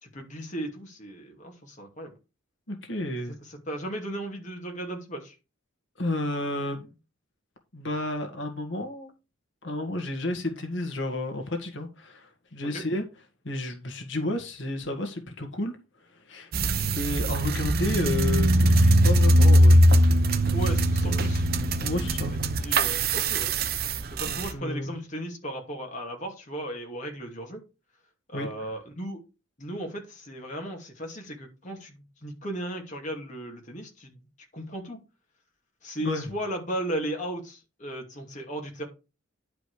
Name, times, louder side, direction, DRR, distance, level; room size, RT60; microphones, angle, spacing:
voice 1, 0.0-2.1 3.4-5.3 12.7-12.8 20.5-21.5 22.6-23.5 24.1-27.6 28.3-29.2 29.6-34.2 34.5-35.0 35.8-38.8, right 1 dB, 35° left, 2.6 m, -36 dB
voice 2, 2.7-3.4 6.0-6.9 7.7-9.1 9.6-13.0 13.4-15.8 16.3-19.8 21.0-21.3 21.8-22.3 24.2-24.9 28.3-28.5 36.0-36.2, left 1 dB, 65° left, 1.8 m, -32 dB
sound 1, 16.5-24.5, right 1 dB, 50° right, 0.8 m, -21 dB
10.5 x 5.1 x 4.9 m
head